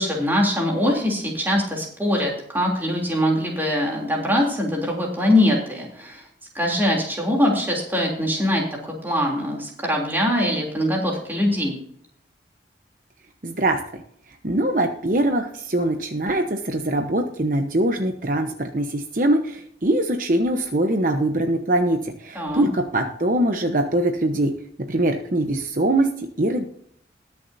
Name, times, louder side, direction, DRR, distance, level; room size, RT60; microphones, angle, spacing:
voice 1, 0.0-6.3 6.5-11.8 22.3-22.7, left 1 dB, 10° right, -1 dB, 3.2 m, -22 dB
voice 2, 13.4-14.0 14.4-24.5 24.9-26.7, right 1 dB, 50° right, 4 dB, 1.0 m, -22 dB
21.0 x 7.1 x 2.8 m, 0.66 s
head